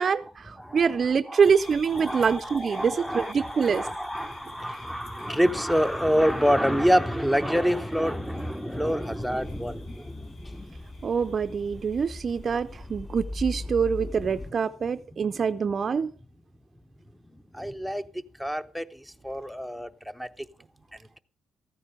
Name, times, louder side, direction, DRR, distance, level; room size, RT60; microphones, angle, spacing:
voice 1, 0.0-3.9 11.0-16.1, right 6 dB, 45° right, 0.5 m, -25 dB
voice 2, 0.6-1.0 1.3-1.4 1.9-10.8 14.0-14.5 17.5-18.0 18.4-19.9 20.1-20.5, equal, ahead, 0.7 m, -27 dB
sound 1, 1.4-12.6, left 2 dB, 65° left, 3.1 m, -51 dB
sound 2, 9.2-14.5, left 2 dB, 20° left, 4.2 m, -39 dB
14.0 x 9.7 x 4.9 m
cardioid pair, 90°, 0 cm